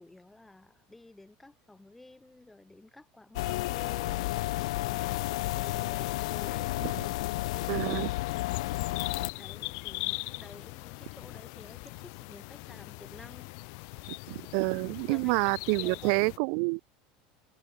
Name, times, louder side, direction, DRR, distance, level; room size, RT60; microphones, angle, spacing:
voice 1, 0.0-7.1 7.5-8.0 8.7-13.5 15.1-15.5 15.8-16.2, left 2 dB, 5° left, 4.0 m, -52 dB
sound 1, 3.4-9.3, left 19 dB, 85° left, 0.5 m, -32 dB
sound 2, 4.8-16.4, left 40 dB or more, 60° left, 1.7 m, -41 dB
voice 2, 7.7-8.1 14.3-16.8, right 40 dB or more, 55° right, 0.6 m, -28 dB
supercardioid pair, 165°, 3 cm